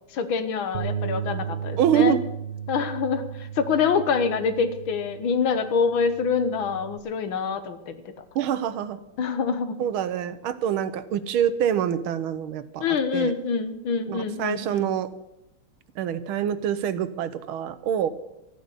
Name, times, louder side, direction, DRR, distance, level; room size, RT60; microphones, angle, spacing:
voice 1, 0.1-2.2 2.7-8.0 9.2-9.8 12.8-14.9, left 5 dB, 70° left, 10 dB, 1.9 m, -25 dB
Bass guitar, 0.7-7.0, right 7 dB, 60° right, 0.5 m, -35 dB
voice 2, 1.8-2.2 8.4-9.0 9.8-12.9 13.1-13.3 14.1-15.1 16.0-18.1, right 9 dB, 75° right, 13 dB, 1.7 m, -25 dB
14.0 x 9.5 x 8.1 m, 0.89 s
omnidirectional pair, 2.4 m